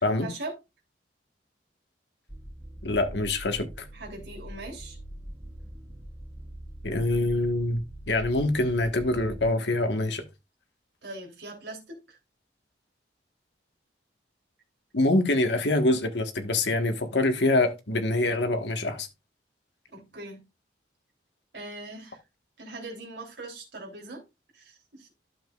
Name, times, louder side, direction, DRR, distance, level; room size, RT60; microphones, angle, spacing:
voice 1, 0.2-0.5 3.9-5.0 11.0-12.2 19.9-20.4 21.5-22.2 22.6-24.2 24.5-25.1, right 2 dB, 70° right, 3.2 m, -41 dB
sound 1, 2.3-9.5, right 1 dB, 10° right, 0.9 m, -43 dB
voice 2, 2.8-3.9 6.8-7.8 8.1-10.2 14.9-19.1, left 2 dB, 75° left, 1.4 m, -25 dB
11.5 x 7.3 x 2.4 m
head